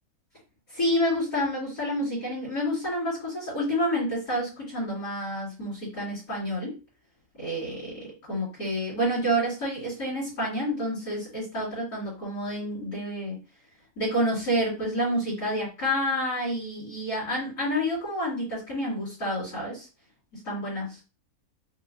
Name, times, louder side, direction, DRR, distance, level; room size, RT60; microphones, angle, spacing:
voice 1, 0.7-6.8 7.4-13.4 14.0-19.9 20.4-21.0, equal, 80° left, -9 dB, 2.7 m, -29 dB
5.4 x 2.0 x 2.5 m, 0.31 s
omnidirectional pair, 1.6 m